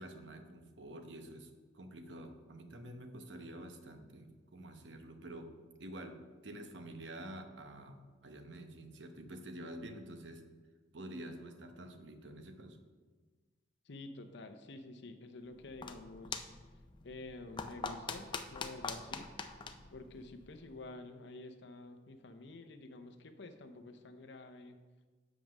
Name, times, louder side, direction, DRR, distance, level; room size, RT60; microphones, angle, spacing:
voice 1, 0.0-5.5 5.8-10.4 10.9-12.9, right 1 dB, 70° right, 6 dB, 0.9 m, -48 dB
voice 2, 13.8-16.5 17.0-19.3 19.9-24.8, left 2 dB, 65° left, 7 dB, 0.7 m, -49 dB
sound 1, 15.5-20.8, left 4 dB, 25° left, 0.5 m, -44 dB
7.5 x 5.4 x 6.0 m, 1.4 s
head